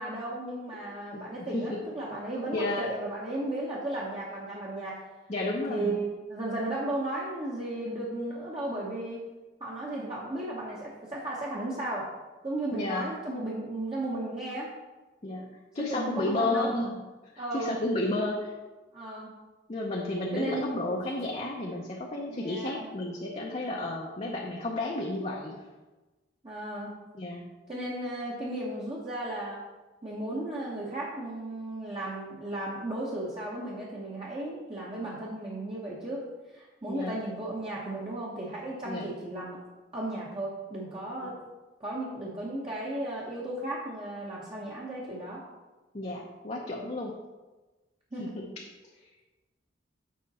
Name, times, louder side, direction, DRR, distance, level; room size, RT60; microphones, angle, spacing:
voice 1, 0.0-4.9 5.7-6.0 6.3-9.2 9.6-12.1 12.4-14.7 15.8-16.7 17.4-17.7 18.9-19.3 20.3-20.7 22.3-22.9 26.4-26.9 27.7-29.6 30.0-36.2 36.5-39.6 39.9-41.3 41.8-45.4 48.1-48.3, right 1 dB, 30° right, -6 dB, 1.0 m, -35 dB
voice 2, 2.5-2.9 5.3-5.9 12.7-13.1 15.2-15.5 15.7-16.9 17.3-18.5 19.7-25.6 27.1-27.5 36.9-37.2 38.8-39.1 41.2-41.3 45.9-47.1 48.2-48.5, left 2 dB, 35° left, -2 dB, 0.7 m, -32 dB
7.6 x 5.2 x 4.1 m, 1.2 s
head